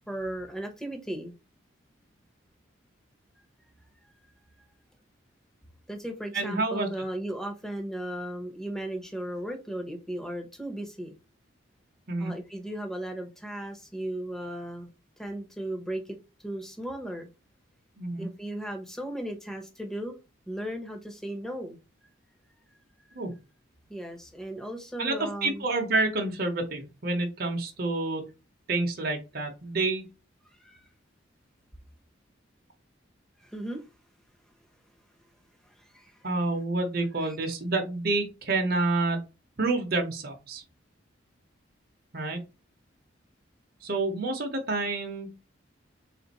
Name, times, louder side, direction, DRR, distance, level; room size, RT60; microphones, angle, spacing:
voice 1, 0.1-1.3 5.9-11.1 12.2-14.9 15.2-16.2 16.4-17.3 18.2-20.2 20.5-21.8 23.9-25.6 30.5-30.9 33.4-33.8 35.6-36.3, right 1 dB, 5° left, 0.9 m, -36 dB
voice 2, 6.3-6.9 12.1-12.3 18.0-18.3 23.1-23.3 25.0-25.1 25.4-28.2 28.7-30.0 36.2-39.2 39.6-40.6 42.1-42.4 43.8-45.3, right 2 dB, 50° right, 0.8 m, -28 dB
3.7 x 2.5 x 4.0 m
head